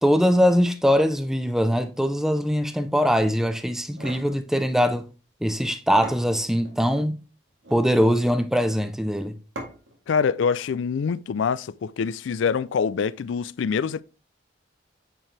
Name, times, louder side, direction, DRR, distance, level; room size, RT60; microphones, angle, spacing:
voice 1, 0.0-5.1 5.4-7.2 7.7-9.3, equal, ahead, 0.5 m, -22 dB
sound 1, 3.8-4.3 5.6-5.7 6.0-6.8 7.5-7.9 9.6-10.0, right 1 dB, 85° right, 2.1 m, -39 dB
voice 2, 10.1-14.0, left 6 dB, 90° left, 0.4 m, -25 dB
9.0 x 4.6 x 3.3 m
head